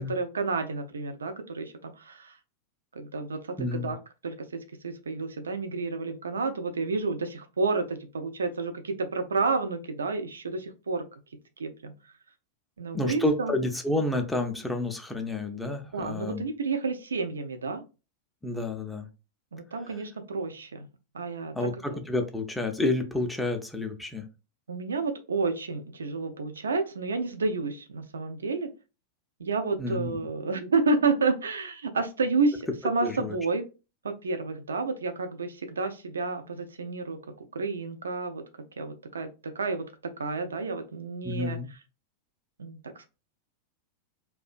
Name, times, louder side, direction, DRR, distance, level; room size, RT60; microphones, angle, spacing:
voice 1, 0.0-2.4 2.9-4.0 4.2-11.1 11.6-11.9 12.8-13.6 15.9-17.8 19.5-20.9 21.1-22.0 24.7-28.7 29.4-33.7 34.0-38.4 38.8-41.8 42.6-43.1, right 3 dB, 70° right, 0.3 m, -30 dB
voice 2, 3.6-3.9 12.9-16.4 18.4-19.1 21.5-24.2 29.8-30.1 33.0-33.4 41.2-41.7, left 2 dB, 5° left, 0.4 m, -29 dB
2.3 x 2.1 x 2.4 m
figure-of-eight pair, 90°, 0 cm